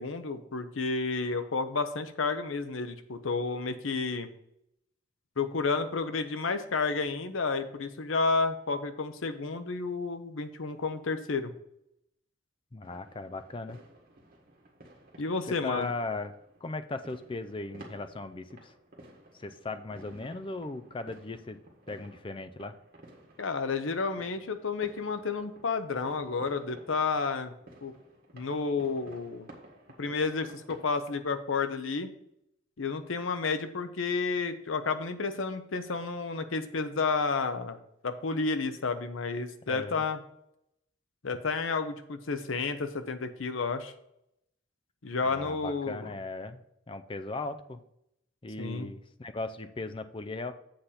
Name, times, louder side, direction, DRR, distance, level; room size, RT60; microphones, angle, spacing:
voice 1, 0.0-4.3 5.4-11.5 15.2-15.9 23.4-27.5 27.8-27.9 28.3-29.5 30.0-32.1 32.8-37.8 38.0-40.2 41.2-43.9 45.0-46.1 48.6-48.9, left 4 dB, 85° left, 10 dB, 0.8 m, -31 dB
voice 2, 12.7-13.8 15.5-16.3 16.6-18.7 19.3-21.6 21.9-22.8 39.7-40.1 45.2-47.8 48.4-50.5, left 3 dB, 25° left, 10 dB, 0.5 m, -38 dB
sound 1, 12.8-30.9, right 1 dB, 50° right, 1.8 m, -54 dB
7.8 x 4.2 x 6.6 m, 0.79 s
head